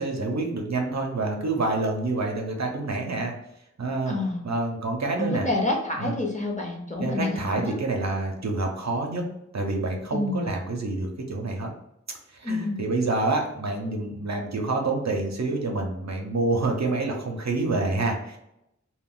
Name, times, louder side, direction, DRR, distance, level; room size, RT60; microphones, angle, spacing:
voice 1, 0.0-3.3 3.8-4.1 4.4-5.5 6.0-6.2 7.0-9.2 9.5-11.7 12.4-18.4, right 2 dB, 65° right, 2 dB, 0.6 m, -27 dB
voice 2, 4.1-4.4 5.2-7.8 10.1-10.4 12.4-12.8, left 2 dB, 25° left, -1 dB, 0.8 m, -28 dB
2.3 x 2.2 x 3.7 m, 0.82 s
wide cardioid pair, 40°, 30 cm